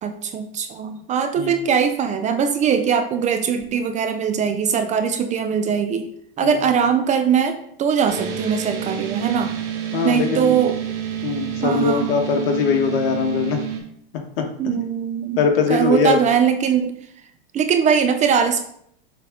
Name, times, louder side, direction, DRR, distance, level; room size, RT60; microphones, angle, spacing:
voice 1, 0.0-6.1 6.4-9.5 10.0-10.8 11.6-12.1 14.6-15.4 15.7-17.0 17.5-18.6, right 7 dB, 25° right, 8 dB, 0.5 m, -21 dB
sound 1, 8.1-13.8, right 9 dB, 50° right, 1.5 m, -29 dB
voice 2, 9.9-10.5 11.2-13.6 14.4-14.5 14.7-14.8 15.4-16.2, left 5 dB, 70° left, 3 dB, 1.4 m, -21 dB
6.9 x 3.8 x 3.6 m, 0.70 s
supercardioid pair, 125°, 30 cm